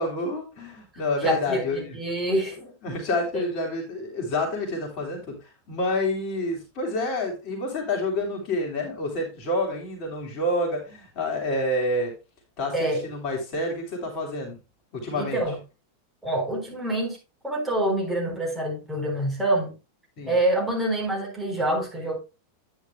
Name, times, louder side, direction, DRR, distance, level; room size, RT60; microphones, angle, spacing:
voice 1, 0.0-2.0 2.8-5.4 5.7-12.1 12.6-14.6 14.9-15.4 20.2-20.3, left 1 dB, 40° left, 3.1 m, -28 dB
voice 2, 1.2-2.6 3.3-3.4 12.7-13.0 15.1-15.6 16.2-17.2 17.4-19.7 20.3-22.2, right 1 dB, 10° right, 4.1 m, -26 dB
9.5 x 9.5 x 2.2 m
figure-of-eight pair, 90°, 0 cm